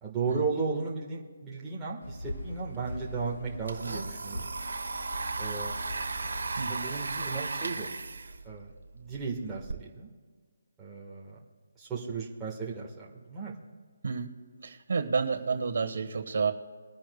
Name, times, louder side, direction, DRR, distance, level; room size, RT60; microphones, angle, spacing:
voice 1, 0.0-4.5 5.4-5.8 6.7-7.9 8.4-10.1 10.8-11.4 11.8-13.5, right 4 dB, 10° right, -5 dB, 1.5 m, -35 dB
sound 1, 2.0-7.3, equal, 70° left, 3.9 m, -42 dB
Domestic sounds home sounds, 2.7-2.8 3.1-9.8, right 3 dB, 85° right, 1.1 m, -36 dB
voice 2, 6.6-6.9 14.0-14.3 14.6-16.5, right 5 dB, 55° right, 6 dB, 1.3 m, -30 dB
22.5 x 10.0 x 2.3 m, 1.5 s
hypercardioid pair, 170°, 0 cm